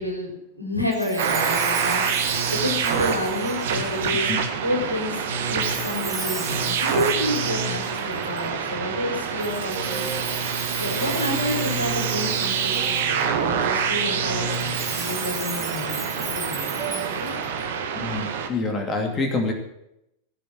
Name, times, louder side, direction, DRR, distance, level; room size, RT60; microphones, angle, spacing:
voice 1, 0.0-17.3, left 1 dB, 90° left, 0 dB, 3.8 m, -30 dB
Chime, 0.9-4.3 5.6-8.5 9.4-13.2 14.5-17.6, right 4 dB, 15° right, 4.2 m, -36 dB
sound 1, 1.2-18.5, right 6 dB, 55° right, 1.8 m, -26 dB
sound 2, 9.7-10.3 11.2-11.8 12.7-13.2 14.1-14.6 15.5-16.0 16.8-17.1, right 8 dB, 30° right, 1.8 m, -37 dB
voice 2, 17.9-19.5, left 3 dB, 25° left, 3 dB, 2.7 m, -26 dB
18.0 x 7.5 x 7.5 m, 0.81 s
figure-of-eight pair, 90°, 0 cm